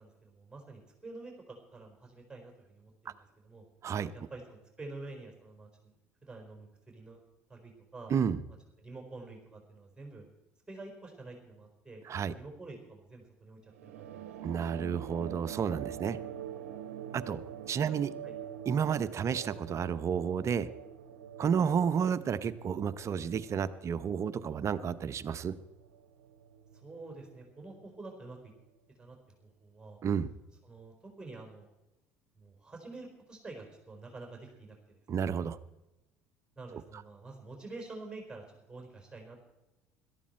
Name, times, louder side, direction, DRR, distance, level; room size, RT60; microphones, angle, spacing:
voice 1, 0.0-3.6 4.1-5.9 6.2-7.2 7.5-8.1 8.8-10.3 10.7-12.0 12.3-14.6 17.9-18.3 26.8-28.5 29.0-30.0 30.6-31.7 32.4-35.3 36.6-39.5, right 3 dB, 10° right, 2 dB, 4.4 m, -48 dB
voice 2, 8.1-8.4 12.0-12.3 14.4-16.2 17.1-17.4 17.7-18.1 18.6-20.7 21.4-25.5 30.0-30.3 35.1-35.6 36.7-36.8, right 7 dB, 40° right, 13 dB, 0.9 m, -31 dB
sound 1, 13.7-28.6, right 9 dB, 85° right, 0.9 m, -46 dB
17.5 x 13.5 x 4.5 m, 0.97 s
hypercardioid pair, 70°, 7 cm